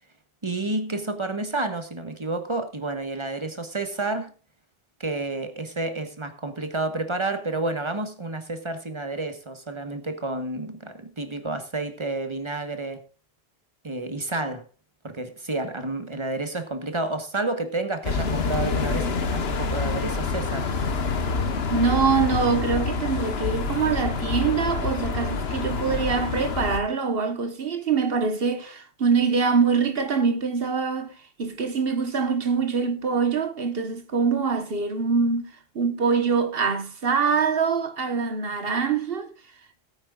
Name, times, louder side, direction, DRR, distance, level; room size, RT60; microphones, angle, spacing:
voice 1, 0.4-4.3 5.0-13.0 13.8-14.6 15.0-20.7, right 2 dB, 30° right, 1.4 m, -30 dB
sound 1, 18.0-26.8, left 4 dB, 80° left, 1.4 m, -27 dB
voice 2, 21.7-31.1 31.4-39.3, right 5 dB, 70° right, 1.4 m, -24 dB
19.5 x 8.8 x 2.4 m
omnidirectional pair, 1.0 m